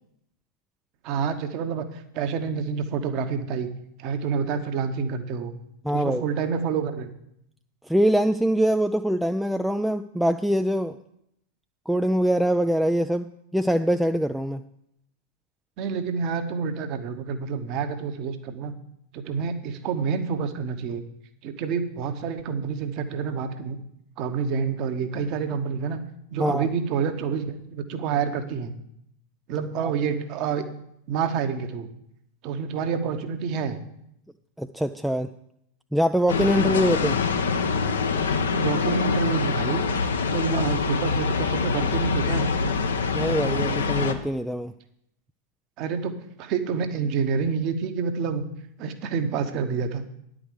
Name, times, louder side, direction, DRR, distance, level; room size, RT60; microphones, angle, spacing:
voice 1, 1.0-3.7 4.0-5.5 5.9-7.1 15.8-18.7 19.1-21.0 21.4-23.8 24.2-26.0 26.3-28.7 29.5-30.7 31.1-31.9 32.4-33.8 38.5-39.9 40.3-42.5 45.8-48.4 48.8-50.0, right 6 dB, 40° right, 8 dB, 1.0 m, -28 dB
voice 2, 5.8-6.2 7.9-11.0 11.9-13.3 13.5-14.6 26.4-26.7 29.8-29.9 34.6-35.3 35.9-37.2 43.1-44.7, equal, ahead, 7 dB, 0.3 m, -23 dB
sound 1, 36.3-44.1, left 4 dB, 65° left, 0.9 m, -25 dB
9.9 x 5.0 x 8.1 m, 0.75 s
figure-of-eight pair, 90°, 0 cm